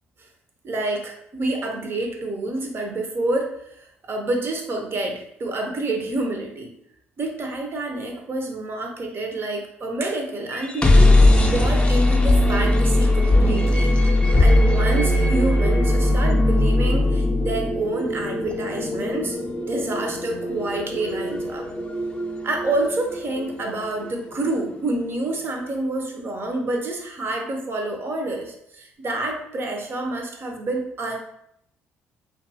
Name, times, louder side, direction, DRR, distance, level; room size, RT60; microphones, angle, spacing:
voice 1, 0.6-3.6 4.1-6.7 7.2-14.0 14.4-19.4 19.7-21.7 22.4-31.2, right 2 dB, 40° right, 2 dB, 0.6 m, -28 dB
sound 1, 10.5-24.4, left 1 dB, 20° left, 0.5 m, -20 dB
2.6 x 2.3 x 2.7 m, 0.74 s
hypercardioid pair, 55°, 6 cm